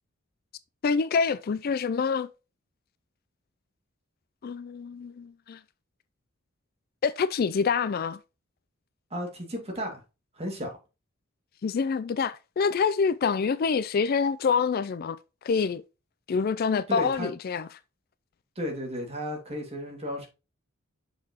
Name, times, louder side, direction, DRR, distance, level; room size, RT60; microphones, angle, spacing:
voice 1, 0.8-2.3 4.4-5.6 7.0-8.2 11.6-15.2 15.4-15.8 16.3-17.7, left 5 dB, 45° left, 0.3 m, -26 dB
voice 2, 9.1-10.0 10.4-10.7 16.9-17.3 18.6-20.3, equal, 30° right, 2.2 m, -33 dB
6.7 x 5.7 x 2.9 m
head